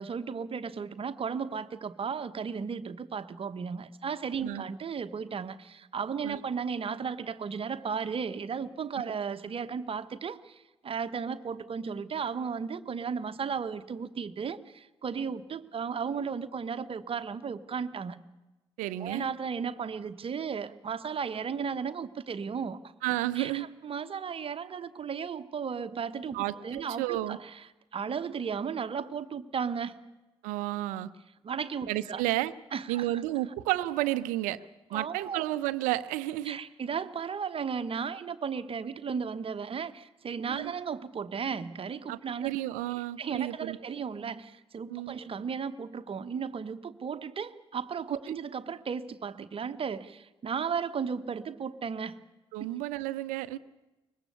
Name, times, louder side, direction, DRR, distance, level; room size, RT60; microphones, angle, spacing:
voice 1, 0.0-18.2 19.0-22.8 23.3-27.7 27.9-30.0 31.4-32.2 32.7-33.2 34.9-35.4 36.4-42.5 43.2-52.2, right 6 dB, 45° right, 12 dB, 1.1 m, -35 dB
voice 2, 18.8-19.3 23.0-23.7 26.3-27.4 30.4-31.1 31.9-32.5 32.9-34.6 34.9-36.6 40.5-40.7 42.1-43.8 44.9-45.2 52.5-53.6, right 16 dB, 70° right, 16 dB, 0.7 m, -31 dB
22.5 x 20.5 x 6.9 m, 1.1 s
figure-of-eight pair, 40°, 14 cm